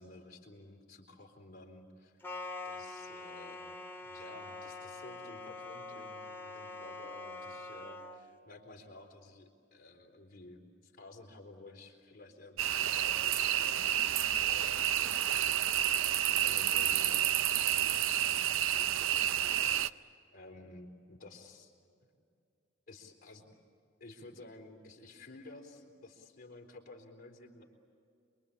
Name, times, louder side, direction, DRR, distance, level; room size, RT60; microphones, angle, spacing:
voice 1, 0.0-2.2 2.6-3.8 4.0-21.7 22.0-22.1 22.9-23.5 24.0-27.6, left 2 dB, 45° left, 0 dB, 3.9 m, -53 dB
sound 1, 2.2-8.2, left 3 dB, 10° left, 1.9 m, -44 dB
sound 2, 12.6-19.9, right 11 dB, 70° right, 0.5 m, -30 dB
28.5 x 23.0 x 8.6 m, 2.4 s
head